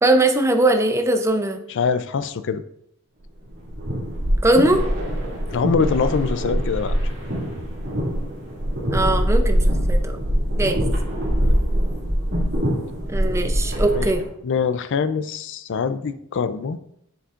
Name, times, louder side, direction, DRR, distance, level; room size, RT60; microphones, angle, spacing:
voice 1, 0.0-1.6 4.4-4.8 8.9-10.2 10.6-10.8 13.1-14.2, right 2 dB, 10° right, 5 dB, 0.5 m, -20 dB
voice 2, 1.7-2.6 5.5-7.1 11.4-11.6 13.9-14.1 14.4-16.8, left 5 dB, 55° left, 13 dB, 0.4 m, -24 dB
sound 1, 3.5-14.3, equal, 55° right, 2.2 m, -23 dB
7.5 x 6.8 x 2.5 m, 0.76 s
head